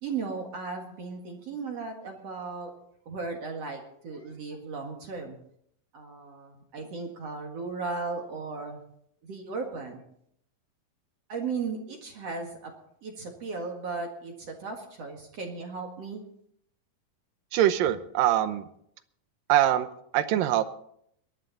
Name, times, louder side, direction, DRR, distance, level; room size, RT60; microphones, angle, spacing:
voice 1, 0.0-2.7 3.1-5.4 5.9-8.8 9.2-10.0 11.3-12.7 13.0-16.2, right 4 dB, 50° right, 1 dB, 2.6 m, -36 dB
voice 2, 17.5-18.6 19.5-19.9 20.1-20.6, right 12 dB, 80° right, 12 dB, 2.5 m, -23 dB
22.0 x 11.0 x 4.1 m, 0.69 s
omnidirectional pair, 4.0 m